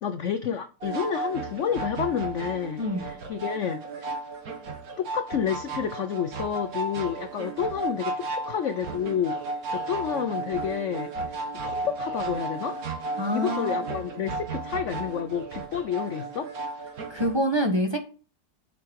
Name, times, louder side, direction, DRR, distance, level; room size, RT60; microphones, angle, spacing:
voice 1, 0.0-4.1 5.0-9.4 9.7-12.8 13.3-16.5, left 8 dB, 65° left, 0.7 m, -30 dB
sound 1, 0.8-17.4, right 3 dB, 55° right, 1.7 m, -34 dB
voice 2, 13.2-13.7 17.1-18.0, equal, 15° right, 1.1 m, -26 dB
7.5 x 5.7 x 6.4 m
omnidirectional pair, 1.9 m